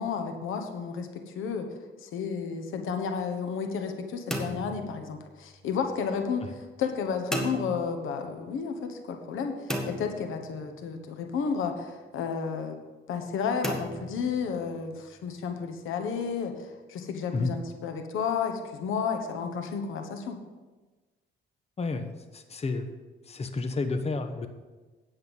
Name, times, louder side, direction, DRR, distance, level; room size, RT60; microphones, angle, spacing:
voice 1, 0.0-1.7 2.0-12.8 13.1-20.4, left 6 dB, 85° left, 6 dB, 1.2 m, -32 dB
sound 1, 4.3-5.6 7.3-8.3 9.7-10.9 13.6-14.8, equal, 5° left, 1.6 m, -35 dB
voice 2, 21.8-22.9 23.3-24.5, left 3 dB, 30° left, 7 dB, 0.9 m, -31 dB
9.8 x 7.9 x 5.4 m, 1.3 s
cardioid pair, 95°, 20 cm